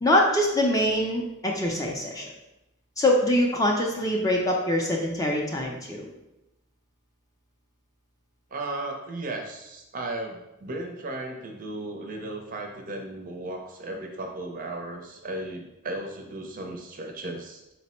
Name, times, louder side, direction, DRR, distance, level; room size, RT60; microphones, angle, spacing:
voice 1, 0.0-2.3 3.0-6.1, left 1 dB, 15° left, -1 dB, 0.4 m, -24 dB
voice 2, 8.5-17.6, right 2 dB, 40° right, 2 dB, 0.5 m, -35 dB
4.1 x 2.0 x 4.2 m, 0.93 s
head